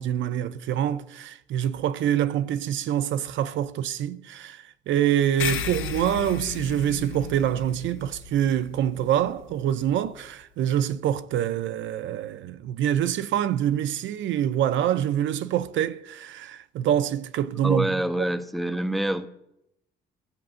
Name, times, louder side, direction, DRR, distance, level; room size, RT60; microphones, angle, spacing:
voice 1, 0.0-18.0, right 10 dB, 75° right, 0.4 m, -25 dB
sound 1, 5.4-10.2, left 7 dB, 80° left, 0.7 m, -35 dB
voice 2, 17.6-19.3, right 1 dB, ahead, 0.5 m, -26 dB
14.5 x 6.1 x 2.5 m
cardioid pair, 90°, 20 cm